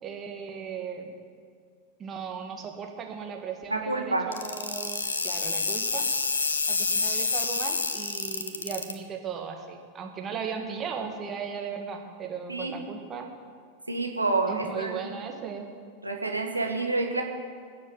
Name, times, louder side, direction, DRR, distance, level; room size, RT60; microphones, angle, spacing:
voice 1, 0.0-1.1 2.0-6.0 6.7-13.3 14.5-15.7, right 6 dB, 25° right, 3 dB, 1.9 m, -37 dB
voice 2, 3.7-4.3 12.5-12.8 13.9-15.0 16.0-17.2, right 2 dB, 85° right, 2 dB, 1.7 m, -28 dB
sound 1, 4.3-8.9, left 4 dB, 70° left, 1.2 m, -28 dB
20.0 x 7.6 x 7.5 m, 2.2 s
figure-of-eight pair, 90°, 0 cm